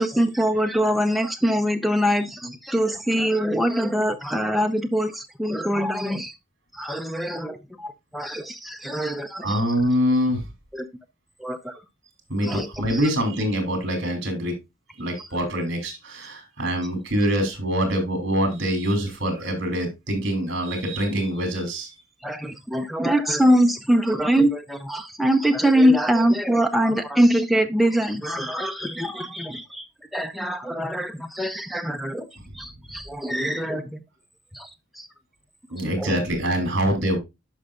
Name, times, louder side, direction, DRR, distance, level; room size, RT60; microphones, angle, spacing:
voice 1, 0.0-6.4 6.7-9.6 10.7-10.8 11.4-11.8 12.4-13.0 15.2-15.3 22.2-29.9 30.1-32.3 32.5-34.0 34.5-35.1 36.0-36.1, equal, ahead, 0.6 m, -23 dB
voice 2, 9.4-10.4 12.3-14.5 15.0-22.0 33.3-33.5 35.7-37.2, equal, 55° right, 3.0 m, -24 dB
11.5 x 5.5 x 2.4 m
head